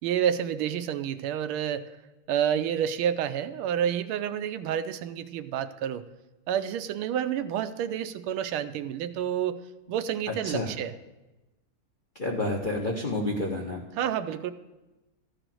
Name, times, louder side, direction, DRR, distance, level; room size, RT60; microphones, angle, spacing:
voice 1, 0.0-1.9 2.3-6.0 6.5-9.6 9.9-10.9 14.0-14.5, right 9 dB, 80° right, 11 dB, 1.5 m, -29 dB
voice 2, 10.3-10.7 12.1-13.8, left 2 dB, 45° left, -1 dB, 0.6 m, -29 dB
14.0 x 5.0 x 7.5 m, 1.1 s
omnidirectional pair, 2.3 m